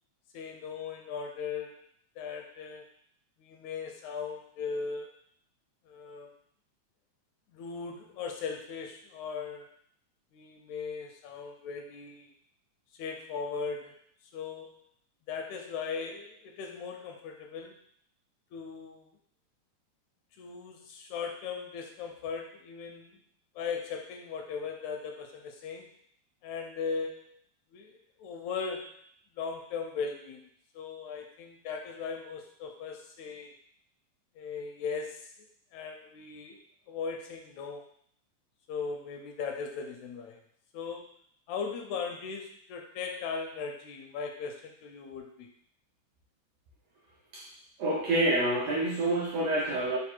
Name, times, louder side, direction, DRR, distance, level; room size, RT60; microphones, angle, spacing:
voice 1, 0.3-1.8 2.2-2.9 3.4-5.1 5.9-6.3 7.5-9.7 10.3-12.3 12.9-14.0 14.3-14.9 15.3-17.8 18.5-19.1 20.4-23.2 23.6-25.9 26.4-27.4 27.7-29.0 29.3-30.5 30.8-33.5 34.4-36.6 36.9-37.9 38.7-40.4 40.7-41.1 41.5-45.5, left 5 dB, 80° left, 3 dB, 1.8 m, -38 dB
voice 2, 47.8-50.0, right 1 dB, 75° right, -4 dB, 1.4 m, -27 dB
4.9 x 2.0 x 4.3 m, 0.63 s
omnidirectional pair, 3.4 m